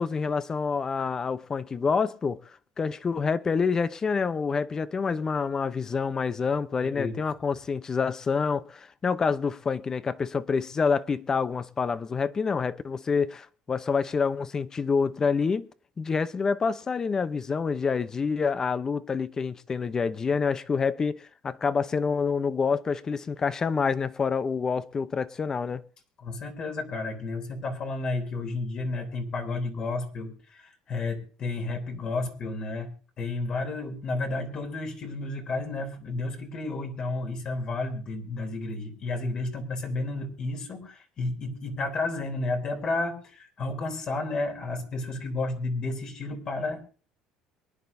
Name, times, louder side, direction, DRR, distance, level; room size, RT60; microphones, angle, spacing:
voice 1, 0.0-2.4 2.8-15.7 16.0-25.8, left 5 dB, 30° left, 0.8 m, -27 dB
voice 2, 6.8-7.1 26.2-32.9 33.2-46.8, left 2 dB, 45° left, 3.4 m, -32 dB
23.5 x 10.5 x 2.7 m
supercardioid pair, 105°, 2 cm